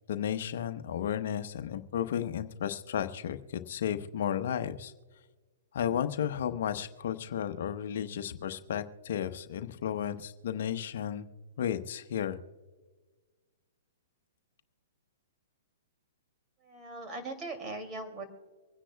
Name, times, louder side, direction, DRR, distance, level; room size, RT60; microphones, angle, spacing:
voice 1, 0.1-4.9 5.7-11.3 11.6-12.4, left 9 dB, 65° left, 9 dB, 0.8 m, -33 dB
voice 2, 16.6-18.2, right 2 dB, 25° right, 5 dB, 2.5 m, -40 dB
25.0 x 10.0 x 2.3 m, 1.4 s
hypercardioid pair, 125°, 0 cm